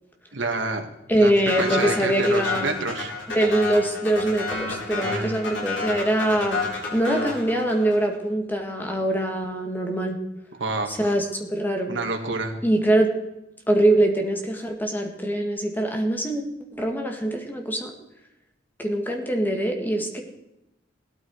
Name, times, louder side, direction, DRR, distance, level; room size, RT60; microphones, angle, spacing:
voice 1, 0.3-0.9 1.1-1.3 1.6-3.1 5.0-5.4 10.6-11.1 11.9-12.6, right 3 dB, 75° right, 3 dB, 2.2 m, -28 dB
voice 2, 1.1-2.7 3.3-6.6 6.9-10.2 10.9-11.9 12.6-13.1 13.7-16.4 16.8-17.9 18.8-20.2, right 1 dB, 10° left, 3 dB, 2.0 m, -23 dB
sound 1, 1.5-8.1, left 3 dB, 75° left, 5.3 m, -30 dB
17.0 x 13.0 x 4.8 m, 0.90 s
head